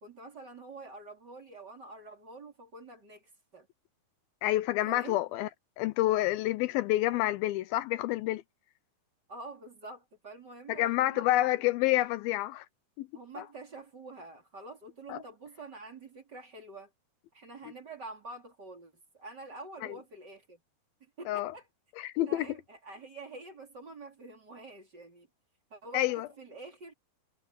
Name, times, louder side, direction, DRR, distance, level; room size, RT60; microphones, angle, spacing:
voice 1, 0.0-3.7 4.8-5.2 7.1-7.3 9.3-11.6 13.1-16.9 17.3-20.6 21.2-21.7 22.3-25.3 25.7-26.0 26.4-26.9, right 3 dB, 30° right, 3.5 m, -47 dB
voice 2, 4.4-5.5 5.8-8.4 10.7-12.7 13.0-13.1 13.4-13.5 15.1-15.2 19.8-20.0 21.3-21.5 22.0-22.5 25.9-26.3, left 16 dB, 80° left, 2.4 m, -28 dB
omnidirectional pair, 4.4 m